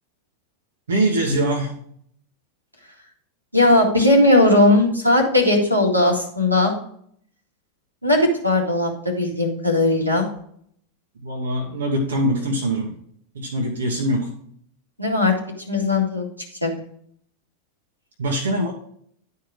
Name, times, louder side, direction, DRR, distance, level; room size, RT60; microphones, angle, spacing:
voice 1, 0.9-1.7 11.2-12.9 13.3-14.3 18.2-18.7, right 1 dB, 65° right, 1 dB, 1.3 m, -23 dB
voice 2, 3.5-6.7 8.0-10.3 15.0-15.3 15.7-16.3 16.6-16.7, left 2 dB, 90° right, 1 dB, 1.9 m, -18 dB
11.0 x 4.7 x 4.9 m, 0.64 s
figure-of-eight pair, 90°, 0 cm